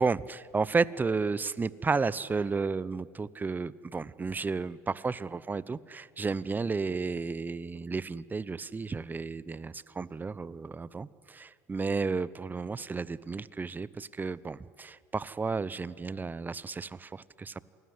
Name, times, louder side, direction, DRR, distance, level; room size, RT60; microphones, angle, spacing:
voice 1, 0.0-17.7, right 4 dB, 20° right, 19 dB, 0.9 m, -32 dB
28.0 x 20.0 x 9.6 m, 2.1 s
hypercardioid pair, 75°, 9 cm